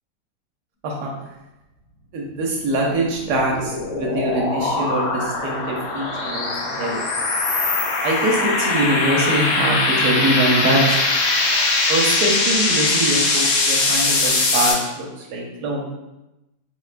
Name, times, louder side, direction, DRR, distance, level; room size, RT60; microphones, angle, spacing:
voice 1, 2.1-7.0 8.0-10.9 11.9-15.9, right 1 dB, 75° right, -2 dB, 1.2 m, -23 dB
sound 1, 2.8-14.7, left 3 dB, 70° left, 0.7 m, -21 dB
4.2 x 2.2 x 2.4 m, 0.97 s
omnidirectional pair, 1.8 m